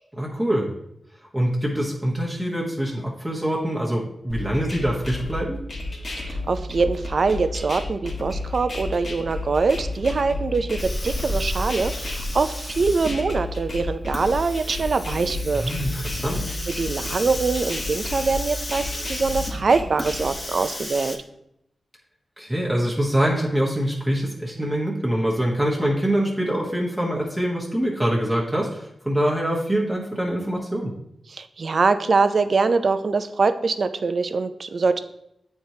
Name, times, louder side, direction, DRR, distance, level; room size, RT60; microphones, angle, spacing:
voice 1, 0.2-0.7 1.3-5.6 15.5-16.4 22.4-30.9, right 1 dB, 10° right, -3 dB, 1.1 m, -24 dB
sound 1, 4.3-20.3, left 2 dB, 55° left, 1.3 m, -32 dB
voice 2, 6.2-15.6 16.1-16.2 16.7-21.2 31.3-35.0, right 4 dB, 60° right, 11 dB, 0.4 m, -23 dB
Hiss, 10.8-21.2, left 1 dB, 30° left, 0.9 m, -33 dB
8.5 x 4.5 x 2.7 m, 0.79 s
wide cardioid pair, 85°, 0 cm